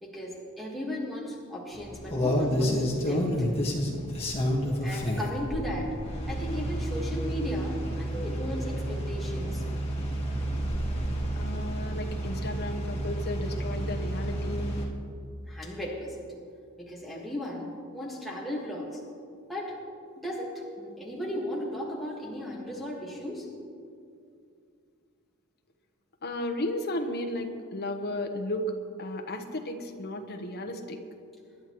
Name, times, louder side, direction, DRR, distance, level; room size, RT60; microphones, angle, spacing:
voice 1, 0.0-3.5 4.8-6.0 6.2-9.6 15.4-16.2 16.8-19.0 19.5-19.8 20.2-23.5, equal, ahead, -5 dB, 1.7 m, -36 dB
sound 1, 1.7-14.9, equal, 30° left, 1.7 m, -30 dB
voice 2, 11.4-14.9 26.2-31.0, left 1 dB, 45° left, 5 dB, 1.1 m, -34 dB
24.5 x 10.5 x 3.1 m, 2.4 s
head